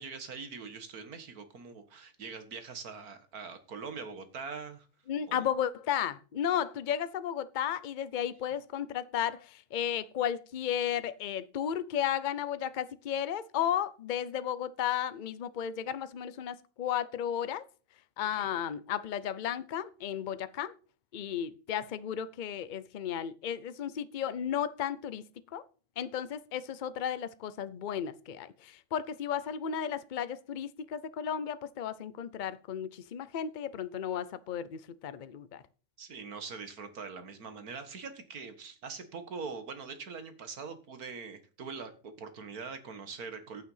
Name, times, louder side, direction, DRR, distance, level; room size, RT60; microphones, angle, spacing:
voice 1, 0.0-4.9 5.3-5.5 18.5-18.6 36.0-43.6, right 5 dB, 85° right, 2.1 m, -43 dB
voice 2, 5.1-17.6 18.2-20.7 21.1-25.2 25.5-25.6 26.0-35.6, left 9 dB, 45° left, 0.7 m, -34 dB
10.5 x 9.1 x 5.6 m
omnidirectional pair, 1.5 m